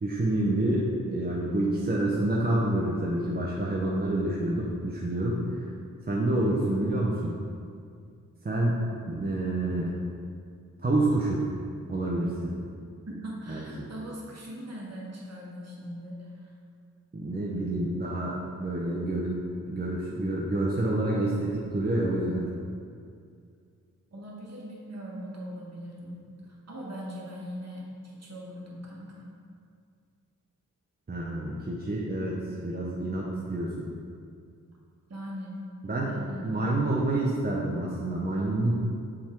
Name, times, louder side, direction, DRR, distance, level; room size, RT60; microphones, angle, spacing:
voice 1, 0.0-5.4 6.1-7.3 8.4-10.0 10.8-11.4 11.9-12.5 13.5-13.7 17.1-19.4 19.7-22.5 31.1-33.9 35.8-36.1 36.4-38.7, right 1 dB, 30° right, -4 dB, 0.7 m, -28 dB
voice 2, 13.1-16.5 24.1-29.3 35.1-35.5 36.0-36.7, equal, 50° right, -4 dB, 1.5 m, -40 dB
7.0 x 3.6 x 4.5 m, 2.3 s
wide cardioid pair, 100°, 33 cm